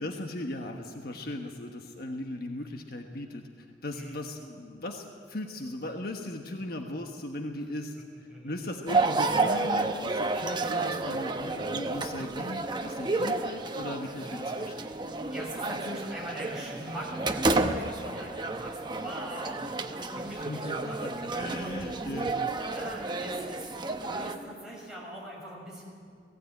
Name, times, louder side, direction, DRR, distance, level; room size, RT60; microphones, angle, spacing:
voice 1, 0.0-14.9 20.3-22.4, left 1 dB, 55° left, 3 dB, 1.3 m, -38 dB
sound 1, 8.9-24.4, right 3 dB, 25° right, 0.9 m, -31 dB
voice 2, 14.9-21.8 22.7-25.9, equal, 5° right, -5 dB, 5.9 m, -42 dB
19.0 x 16.0 x 9.1 m, 2.2 s
head